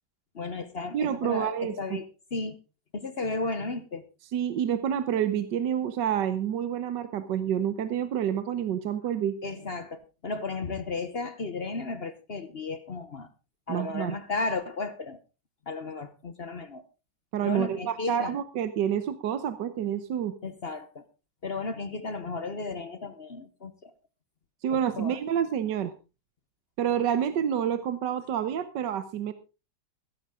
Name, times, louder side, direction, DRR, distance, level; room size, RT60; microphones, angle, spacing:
voice 1, 0.3-2.6 2.9-4.0 9.4-13.3 13.7-15.2 15.7-16.8 17.4-18.3 20.4-21.0 21.4-23.9 24.7-25.2, left 3 dB, 40° left, 12 dB, 1.0 m, -34 dB
voice 2, 0.9-2.0 4.3-9.3 13.7-14.2 17.3-20.3 24.6-25.9 26.8-29.3, right 9 dB, 75° right, 11 dB, 1.5 m, -28 dB
15.5 x 13.0 x 3.7 m, 0.31 s
omnidirectional pair, 1.9 m